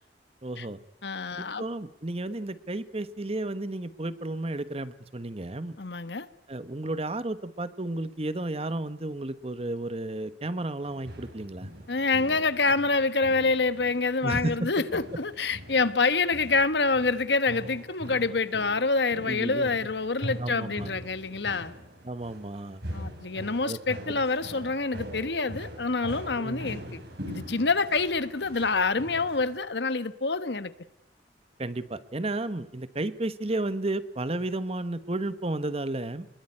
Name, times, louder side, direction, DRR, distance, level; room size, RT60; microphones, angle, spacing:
voice 1, 0.4-0.8 1.4-5.8 6.5-11.7 14.2-14.7 19.3-19.7 20.4-20.9 22.0-22.8 23.6-23.8 24.1-24.2 26.4-26.7 31.6-36.3, right 2 dB, 35° right, 13 dB, 1.2 m, -32 dB
voice 2, 1.0-1.6 5.8-6.3 11.9-21.7 22.9-27.0 27.3-30.7, left 3 dB, 70° left, 13 dB, 1.3 m, -27 dB
sound 1, 10.8-29.6, equal, 65° right, 5.9 m, -42 dB
26.5 x 21.5 x 9.7 m, 0.82 s
head